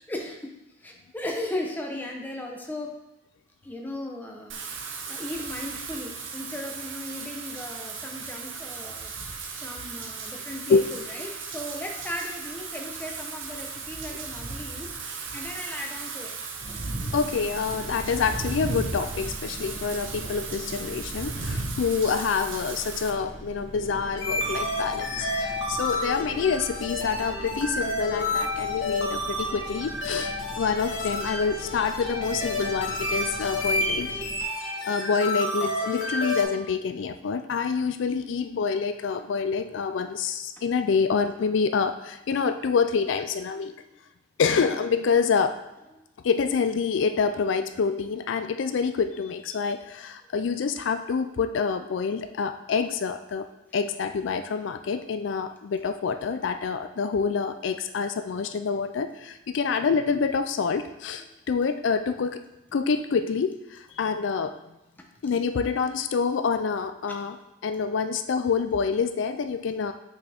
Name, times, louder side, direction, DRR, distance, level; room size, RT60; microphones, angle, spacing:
voice 1, 0.1-0.5 0.8-2.9 3.6-4.6 5.1-9.1 9.6-15.0 15.3-16.4 43.5-43.8 59.6-59.8 61.2-61.6, left 1 dB, 10° left, 1 dB, 0.8 m, -37 dB
Wind / Rain, 4.5-23.1, right 4 dB, 85° right, 0.8 m, -36 dB
sound 1, 16.6-34.4, equal, 35° right, 1.3 m, -42 dB
voice 2, 17.1-34.1 34.9-43.7 44.4-45.6 46.2-53.5 53.7-62.4 62.7-64.5 65.2-67.4 67.6-69.9, left 5 dB, 75° left, 9 dB, 0.4 m, -27 dB
sound 2, 24.1-36.4, left 2 dB, 90° left, 1.5 m, -30 dB
6.2 x 5.6 x 3.5 m, 0.93 s
head